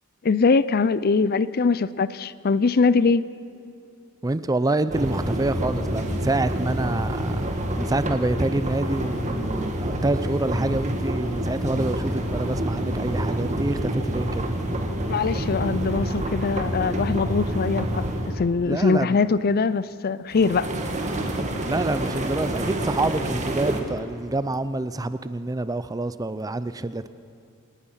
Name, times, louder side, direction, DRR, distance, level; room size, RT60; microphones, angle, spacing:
voice 1, 0.2-3.2 15.1-18.1 18.4-20.7, left 4 dB, 45° left, 0.5 m, -22 dB
voice 2, 4.2-14.5 18.6-19.2 21.7-27.1, right 2 dB, 15° right, 0.5 m, -27 dB
sound 1, 4.9-18.5 20.3-23.8, right 1 dB, 35° right, 1.9 m, -27 dB
27.5 x 18.5 x 5.7 m
head